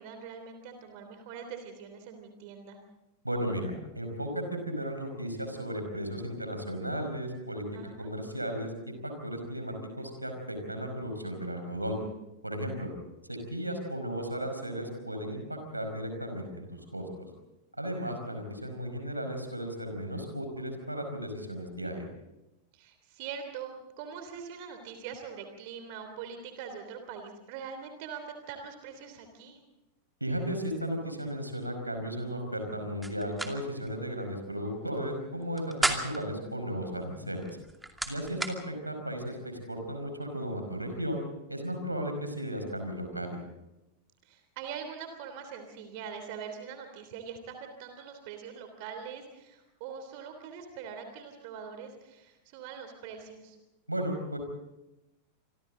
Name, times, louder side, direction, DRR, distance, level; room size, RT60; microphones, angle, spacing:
voice 1, 0.0-2.8 7.7-8.1 22.7-29.6 38.4-38.5 44.2-53.6, right 7 dB, 45° right, 6 dB, 3.2 m, -43 dB
voice 2, 3.2-7.6 8.0-8.7 9.0-12.0 12.4-12.9 13.3-17.3 17.8-22.0 30.2-37.5 38.1-41.2 41.5-43.4 53.9-54.4, equal, 85° right, 5 dB, 5.2 m, -35 dB
sound 1, 33.0-33.5 33.8-33.9 35.4-36.3 37.4-38.5, right 2 dB, 5° right, 2.5 m, -32 dB
27.0 x 25.5 x 3.9 m, 0.97 s
figure-of-eight pair, 90°, 0 cm